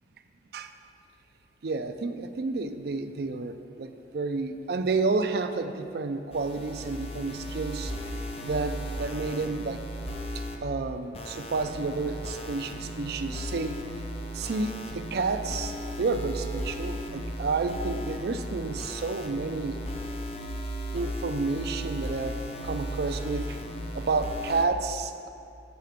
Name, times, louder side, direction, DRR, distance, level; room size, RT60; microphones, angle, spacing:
voice 1, 1.6-7.9 8.4-9.8 10.6-13.8 14.3-19.8 20.9-22.4 22.6-23.6 23.9-25.3, right 3 dB, 60° right, 9 dB, 0.4 m, -30 dB
sound 1, 6.3-10.6 11.1-24.7, equal, 35° left, 0.5 m, -36 dB
8.0 x 5.7 x 5.0 m, 2.6 s
head